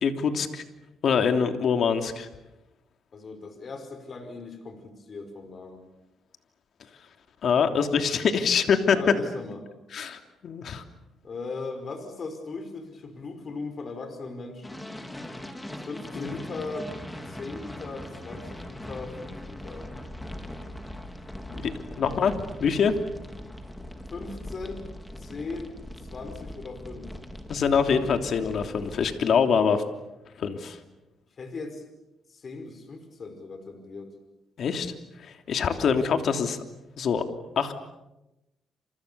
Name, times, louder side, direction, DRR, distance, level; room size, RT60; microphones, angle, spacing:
voice 1, 0.0-0.6 1.0-2.3 7.4-9.0 9.9-10.8 16.1-16.4 21.6-21.7 22.0-22.3 22.6-23.0 27.5-29.8 30.4-30.8 34.6-34.9 35.2-36.6 37.0-37.2 37.6-37.7, left 6 dB, 60° left, 6 dB, 3.1 m, -24 dB
voice 2, 3.1-5.8 8.9-9.7 11.2-14.8 15.9-16.9 17.3-19.9 22.0-22.5 24.1-24.9 25.2-27.1 31.4-31.9 32.3-34.1 35.6-35.9, left 3 dB, 45° left, 7 dB, 5.1 m, -38 dB
sound 1, 14.6-29.1, left 1 dB, 10° left, 3.9 m, -40 dB
29.5 x 28.0 x 7.0 m, 0.95 s
cardioid pair, 90°, 0 cm